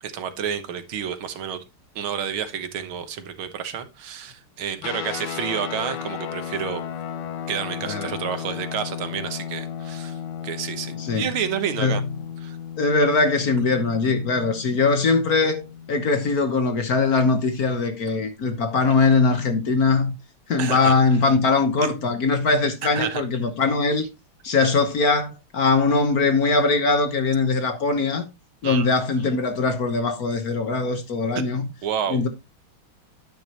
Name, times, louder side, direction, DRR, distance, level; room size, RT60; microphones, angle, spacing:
voice 1, 0.0-1.6 2.0-6.8 7.5-10.2 10.4-12.0 12.4-12.6 20.6-20.9 22.8-23.2 28.6-29.0 31.4-31.5 31.8-32.2, right 8 dB, 75° right, 2.0 m, -29 dB
sound 1, 4.8-16.6, left 8 dB, 85° left, 1.8 m, -35 dB
voice 2, 11.0-11.3 11.8-12.1 12.8-20.1 20.5-24.1 24.4-28.2 28.6-31.7 32.1-32.3, left 4 dB, 50° left, 1.5 m, -21 dB
10.0 x 9.4 x 2.9 m
omnidirectional pair, 2.3 m